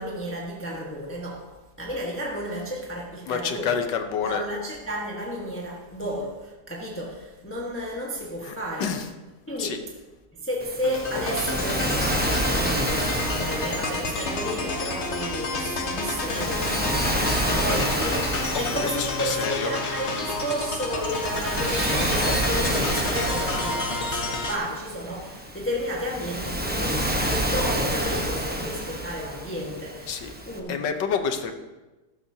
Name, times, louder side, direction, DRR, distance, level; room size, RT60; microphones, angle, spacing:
voice 1, 0.0-3.8 4.2-8.9 9.5-9.8 10.4-31.0, equal, 10° left, 1.3 m, -32 dB
voice 2, 3.3-4.4 8.4-9.1 9.6-9.8 18.5-19.8 30.1-30.3 30.7-31.5, left 6 dB, 85° left, 1.6 m, -28 dB
Waves surf, 10.6-30.6, right 1 dB, 10° right, 0.6 m, -29 dB
sound 1, 10.8-24.5, left 3 dB, 45° left, 1.3 m, -30 dB
sound 2, 21.6-23.5, right 2 dB, 75° right, 2.8 m, -37 dB
14.5 x 11.5 x 2.8 m
omnidirectional pair, 1.9 m